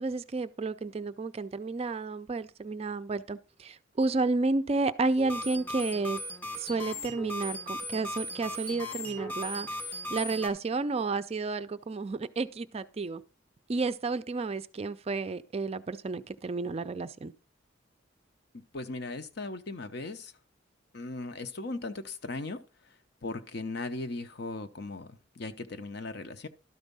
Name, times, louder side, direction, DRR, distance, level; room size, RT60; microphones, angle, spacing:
voice 1, 0.0-6.2 6.6-9.8 10.1-13.2 13.7-17.3, right 3 dB, 30° right, 0.4 m, -31 dB
sound 1, 5.2-10.5, equal, 10° left, 1.4 m, -38 dB
voice 2, 18.5-20.3 20.9-22.6 22.8-22.9 23.2-26.5, left 2 dB, 60° left, 0.8 m, -38 dB
12.0 x 4.5 x 5.4 m
head